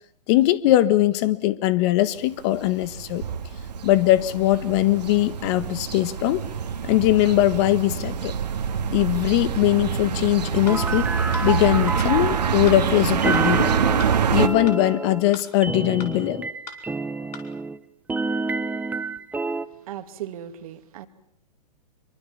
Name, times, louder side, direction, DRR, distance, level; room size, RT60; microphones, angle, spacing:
voice 1, 0.3-3.2 3.8-6.4 6.8-8.3 8.9-11.1 11.4-13.7 14.3-16.5, left 15 dB, 40° left, 1.5 m, -21 dB
sound 1, 2.5-14.5, right 7 dB, 75° right, 2.2 m, -26 dB
sound 2, 10.7-10.8 11.3-11.5 12.0-12.1 12.7-12.8 13.3-13.5 14.0-14.1 14.7-14.8 15.3-15.5 16.0-16.1 16.7-16.8 17.3-17.5, left 6 dB, 65° left, 5.2 m, -39 dB
sound 3, 10.7-12.7 13.2-17.8 18.1-19.7, right 3 dB, 5° right, 1.1 m, -29 dB
voice 2, 19.7-21.1, right 11 dB, 55° right, 2.3 m, -37 dB
26.0 x 23.5 x 7.3 m
hypercardioid pair, 120°, 21 cm